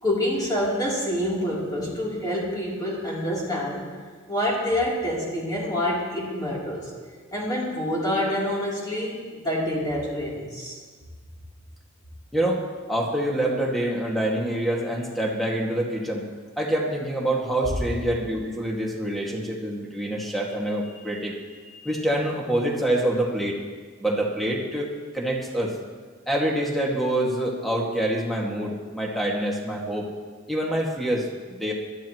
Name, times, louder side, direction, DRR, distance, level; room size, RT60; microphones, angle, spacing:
voice 1, 0.0-3.9 4.3-6.9 7.3-10.8, left 1 dB, 20° left, -5 dB, 3.5 m, -27 dB
voice 2, 12.3-12.6 12.9-16.2 16.6-23.6 24.0-24.9 25.1-25.8 26.3-30.1 30.5-31.7, right 1 dB, ahead, -3 dB, 2.1 m, -26 dB
20.5 x 13.0 x 3.1 m, 1.5 s
head